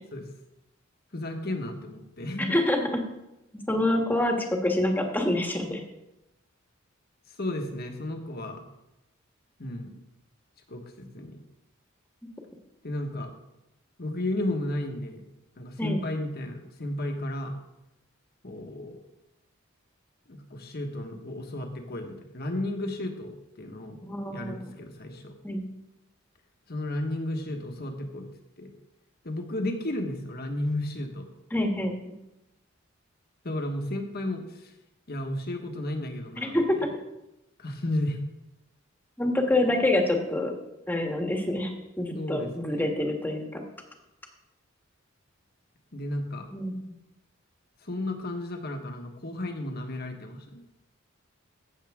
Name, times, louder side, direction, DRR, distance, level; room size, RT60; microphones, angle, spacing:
voice 1, 1.1-2.6 7.4-8.6 9.6-9.9 10.7-11.4 12.8-13.3 14.0-15.3 15.6-17.6 18.4-19.0 20.3-24.0 24.3-25.3 26.7-28.3 28.6-28.7 29.2-31.3 33.4-34.4 35.1-36.8 37.6-38.2 42.1-43.0 45.9-46.5 47.8-50.6, left 1 dB, 50° left, 4 dB, 1.4 m, -33 dB
voice 2, 2.4-3.0 3.7-5.8 15.8-16.0 24.0-24.6 25.4-25.6 31.5-32.0 36.4-36.8 39.2-40.5 40.9-41.7 42.0-43.6 46.5-46.9, left 1 dB, 10° left, 2 dB, 1.5 m, -26 dB
15.0 x 7.3 x 3.6 m, 0.92 s
head